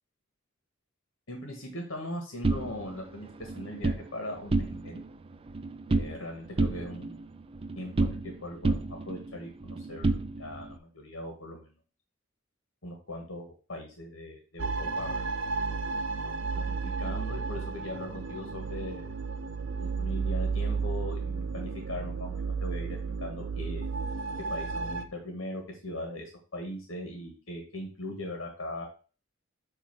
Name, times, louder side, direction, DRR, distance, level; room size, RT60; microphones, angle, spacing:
voice 1, 1.3-5.0 5.9-7.2 7.7-11.8 12.8-15.4 16.2-19.2 19.8-23.9 24.5-28.9, left 1 dB, 75° left, 3 dB, 1.6 m, -40 dB
sound 1, 2.4-4.0 4.4-5.1 5.3-6.3 6.6-8.4 8.6-10.7, right 3 dB, 25° right, 0.4 m, -30 dB
sound 2, 14.6-25.0, right 4 dB, 70° right, 0.8 m, -33 dB
8.2 x 2.9 x 6.0 m, 0.37 s
head